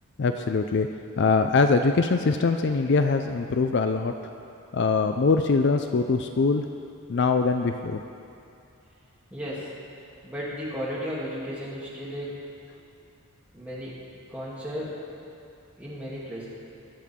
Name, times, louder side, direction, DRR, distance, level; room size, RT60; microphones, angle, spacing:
voice 1, 0.2-0.9 1.2-4.1 4.7-6.7 7.1-8.0, left 4 dB, 50° left, 7 dB, 0.4 m, -23 dB
voice 2, 9.3-9.7 10.2-12.4 13.5-14.0 14.3-14.9 15.8-16.5, equal, 5° right, -9 dB, 2.8 m, -34 dB
22.0 x 7.6 x 3.7 m, 2.6 s
head